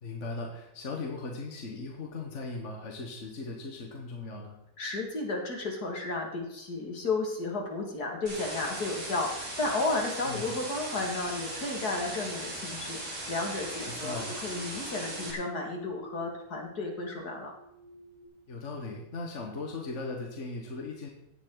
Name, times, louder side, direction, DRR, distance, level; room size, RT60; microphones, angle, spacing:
voice 1, 0.0-4.6 10.3-10.5 13.9-14.3 18.5-21.1, left 3 dB, 45° left, 0 dB, 1.7 m, -38 dB
voice 2, 4.8-17.5, left 3 dB, 60° left, 0 dB, 2.8 m, -33 dB
sound 1, 8.3-15.3, right 1 dB, 60° right, 3.7 m, -38 dB
sound 2, 13.5-18.3, right 1 dB, 85° right, 6.0 m, -52 dB
16.0 x 9.8 x 4.0 m, 0.82 s
omnidirectional pair, 1.9 m